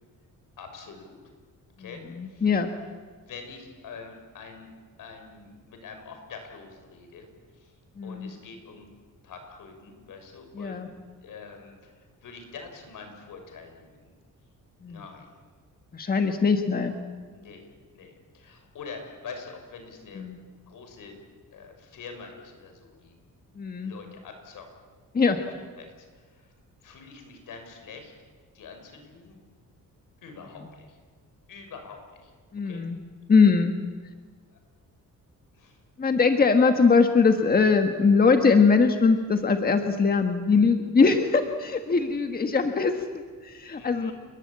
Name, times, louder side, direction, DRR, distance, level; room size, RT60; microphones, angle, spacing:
voice 1, 0.6-1.2 1.8-2.5 3.3-4.7 5.0-7.3 7.5-7.7 8.0-8.9 9.2-10.8 11.2-14.1 14.9-15.3 17.3-20.2 20.7-21.2 21.5-23.1 23.8-24.7 25.3-25.5 25.8-26.5 26.8-28.1 28.5-29.4 30.2-31.0 31.5-32.3 32.6-32.8 34.5-34.6 35.5-35.8 43.7-44.1, left 5 dB, 75° left, 5 dB, 6.2 m, -45 dB
voice 2, 1.8-2.7 8.0-8.3 10.5-10.9 14.8-15.0 15.9-16.9 20.1-20.4 23.5-23.9 25.1-25.4 32.5-33.0 33.3-33.7 36.0-44.1, left 4 dB, 25° left, 6 dB, 1.5 m, -22 dB
29.5 x 22.0 x 8.8 m, 1.5 s
cardioid pair, 145°, 33 cm